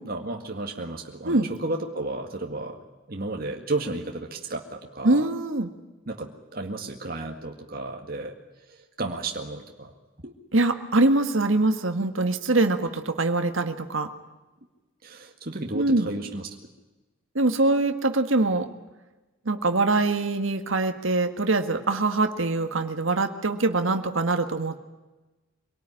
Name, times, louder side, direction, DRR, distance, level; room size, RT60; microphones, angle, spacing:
voice 1, 0.0-2.8 3.1-5.3 6.1-8.3 8.7-9.9 10.2-10.3 15.0-16.5, right 2 dB, 45° right, 2 dB, 2.0 m, -33 dB
voice 2, 5.0-5.7 10.5-14.1 15.7-16.1 17.3-18.7 19.4-24.8, right 2 dB, 75° right, 7 dB, 1.7 m, -23 dB
25.0 x 18.5 x 10.0 m, 1.1 s
head